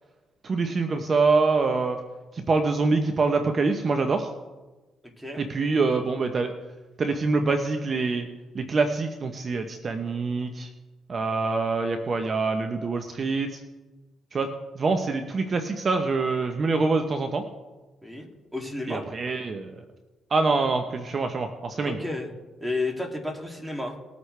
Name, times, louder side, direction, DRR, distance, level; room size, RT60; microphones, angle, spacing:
voice 1, 0.4-2.0 2.3-4.3 5.4-6.5 7.0-8.3 8.5-10.7 11.1-13.6 14.3-14.5 14.7-17.4 18.9-19.7 20.3-22.0, right 3 dB, 40° right, 6 dB, 1.0 m, -25 dB
voice 2, 18.0-19.0 21.8-22.3 22.6-24.0, left 2 dB, 5° right, 1 dB, 2.6 m, -32 dB
20.5 x 8.2 x 3.4 m, 1.2 s
cardioid pair, 90°, 0 cm